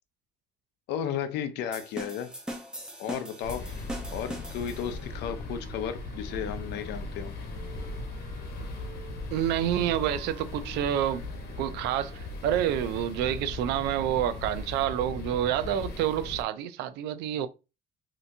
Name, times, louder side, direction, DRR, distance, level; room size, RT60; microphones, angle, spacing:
voice 1, 0.9-2.3 3.0-3.6 4.1-7.4, left 8 dB, 80° left, 0.6 m, -34 dB
sound 1, 1.7-5.1, equal, 5° right, 0.9 m, -40 dB
sound 2, 3.4-16.4, left 2 dB, 65° left, 1.1 m, -38 dB
Wind instrument woodwind instrument, 4.0-6.9 7.5-12.3, right 6 dB, 40° right, 1.4 m, -53 dB
voice 2, 9.3-11.2 11.6-17.5, right 11 dB, 90° right, 0.4 m, -28 dB
3.3 x 2.8 x 2.7 m
cardioid pair, 110°, 17 cm